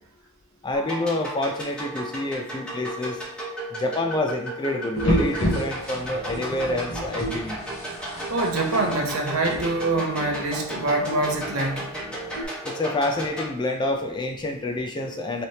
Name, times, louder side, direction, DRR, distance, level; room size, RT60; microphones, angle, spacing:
voice 1, 0.6-3.2 3.7-7.6 12.6-15.5, left 2 dB, 20° left, 3 dB, 0.3 m, -28 dB
sound 1, 0.7-13.4, right 1 dB, 5° left, 1.2 m, -34 dB
sound 2, 4.9-12.4, equal, 65° left, 1.3 m, -31 dB
voice 2, 8.3-11.9 12.4-12.5, right 2 dB, 65° right, 2 dB, 0.7 m, -25 dB
4.1 x 3.2 x 2.8 m, 0.70 s
head